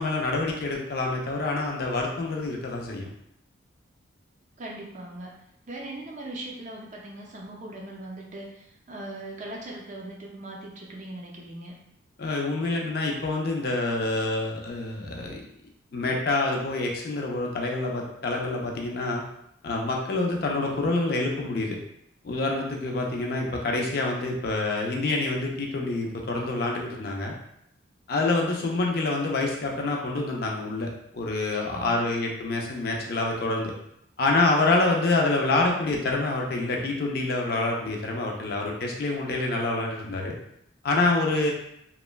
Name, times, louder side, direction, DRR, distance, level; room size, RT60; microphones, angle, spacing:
voice 1, 0.0-3.1 12.2-15.4 15.9-19.2 19.6-21.8 22.2-27.3 28.1-30.9 31.1-33.7 34.2-40.4 40.8-41.5, left 2 dB, 50° left, 0 dB, 0.4 m, -27 dB
voice 2, 4.6-5.3 5.7-11.7 31.6-32.0, right 1 dB, 40° right, -2 dB, 0.4 m, -39 dB
2.9 x 2.1 x 2.2 m, 0.76 s
head